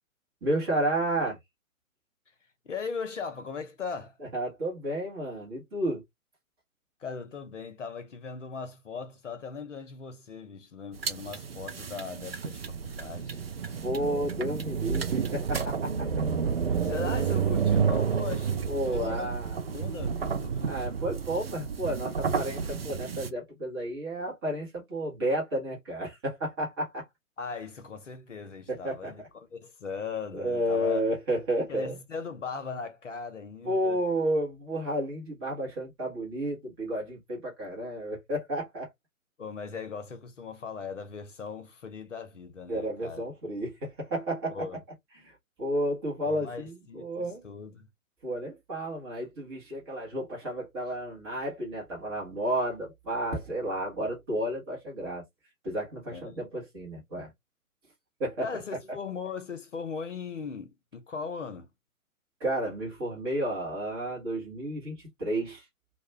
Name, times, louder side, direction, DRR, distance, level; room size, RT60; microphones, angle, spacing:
voice 1, 0.4-1.4 4.2-6.0 13.8-16.1 17.3-17.4 18.7-19.6 20.6-27.0 28.7-29.3 30.3-32.0 33.6-38.9 42.7-44.7 45.2-47.5 48.2-55.2 55.6-57.3 58.2-58.5 62.4-65.7, right 1 dB, 15° right, 1.0 m, -32 dB
voice 2, 2.6-4.2 7.0-13.4 16.8-19.3 19.7-20.7 27.4-29.2 29.5-31.0 31.7-34.0 39.4-43.2 44.5-44.8 46.2-47.9 56.1-56.4 58.4-61.7, left 5 dB, 60° left, 0.8 m, -39 dB
sound 1, 10.9-23.3, right 6 dB, 45° right, 0.5 m, -30 dB
2.4 x 2.2 x 3.0 m
figure-of-eight pair, 135°, 42 cm